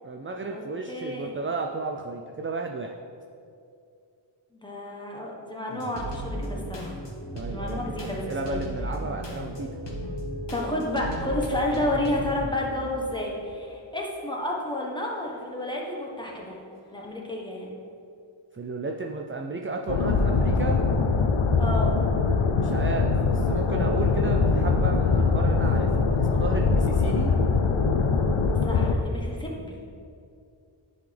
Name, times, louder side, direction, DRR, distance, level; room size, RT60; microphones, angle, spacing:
voice 1, 0.0-3.0 7.3-9.7 18.5-20.8 22.6-27.3, right 3 dB, 30° right, 2 dB, 0.3 m, -33 dB
voice 2, 0.9-1.3 4.5-7.0 7.5-8.6 10.5-16.6 16.9-17.7 21.6-22.0 28.6-29.8, left 1 dB, 10° left, -2 dB, 1.1 m, -31 dB
sound 1, 5.7-13.1 13.6-14.5 15.1-15.3 15.6-16.6, equal, 60° left, 1.3 m, -35 dB
sound 2, 19.9-28.9, left 4 dB, 75° left, 0.6 m, -22 dB
10.0 x 4.1 x 3.3 m, 2.5 s
wide cardioid pair, 75°, 48 cm